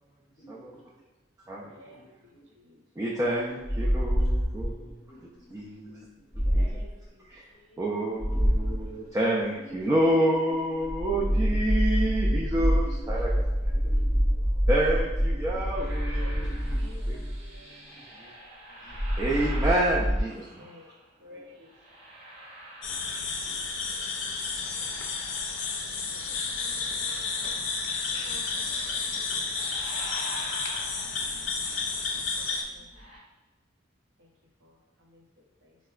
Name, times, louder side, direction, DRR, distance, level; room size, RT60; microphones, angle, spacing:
voice 1, 0.4-0.7 1.6-2.1 2.4-2.5 3.8-4.1 4.8-5.6 6.2-6.6 8.1-8.8 9.6-9.8 12.5-13.1 13.6-14.3 14.8-15.6 16.1-16.9 17.8-18.0 18.7-19.2 21.3-21.6, right 1 dB, 45° left, -2 dB, 0.6 m, -50 dB
voice 2, 1.6-2.8 6.4-8.0 16.1-17.9 20.5-20.9 21.2-21.7 23.0-24.5 24.7-25.0 25.8-26.7 28.1-29.2 31.9-33.2 34.2-34.3 34.6-35.8, left 2 dB, 75° right, -2 dB, 0.7 m, -55 dB
voice 3, 3.0-4.9 5.5-6.1 6.5-6.7 7.3-7.5 7.8-13.7 14.7-16.8 17.1-17.2 18.2-18.3 18.8-20.7, right 1 dB, 15° right, -5 dB, 0.3 m, -28 dB
sound 1, 3.6-4.9 6.3-6.9 8.2-8.9 10.8-17.5 18.9-20.2, equal, ahead, 0.7 m, -26 dB
sound 2, 15.7-21.1 21.6-23.8 24.1-33.2, equal, 35° right, 0.7 m, -47 dB
sound 3, 22.8-32.6, left 4 dB, 85° left, 0.4 m, -31 dB
4.5 x 2.1 x 2.3 m, 1.1 s
head